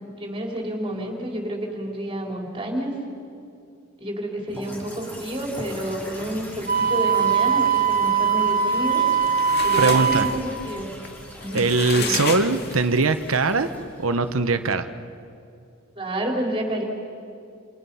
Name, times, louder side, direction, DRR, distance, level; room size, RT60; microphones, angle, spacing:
voice 1, 0.2-2.9 4.0-9.0 9.6-10.9 11.4-12.2 15.9-16.8, right 1 dB, 25° right, 0 dB, 4.4 m, -29 dB
sound 1, 4.5-14.6, equal, 10° left, 6.3 m, -42 dB
Wind instrument woodwind instrument, 6.7-10.4, right 7 dB, 50° right, 2.0 m, -21 dB
sound 2, 8.9-13.1, left 5 dB, 55° left, 2.1 m, -32 dB
voice 2, 9.8-10.3 11.5-13.7 14.0-14.9, right 3 dB, 85° right, 9 dB, 1.1 m, -21 dB
29.5 x 29.0 x 5.6 m, 2.5 s
head